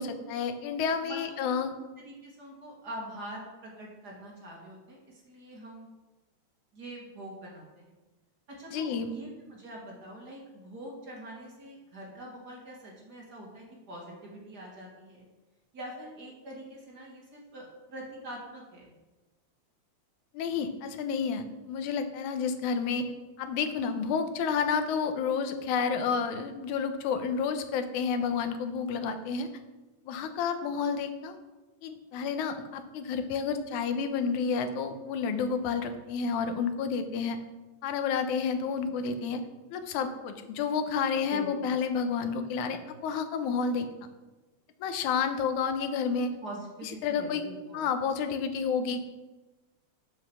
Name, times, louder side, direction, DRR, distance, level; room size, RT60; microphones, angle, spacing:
voice 1, 0.0-1.7 8.7-9.1 20.3-23.1 23.4-29.5 30.1-31.4 31.8-37.4 37.8-39.4 39.7-43.9 44.8-46.3 46.8-47.4 47.7-49.0, left 6 dB, 90° left, 8 dB, 2.3 m, -30 dB
voice 2, 1.0-1.5 2.0-5.9 6.7-7.9 8.6-15.3 15.7-19.0 25.9-26.2 41.3-41.7 46.4-47.8, right 1 dB, 35° right, -2 dB, 2.4 m, -44 dB
7.9 x 7.7 x 6.2 m, 1.1 s
omnidirectional pair, 3.3 m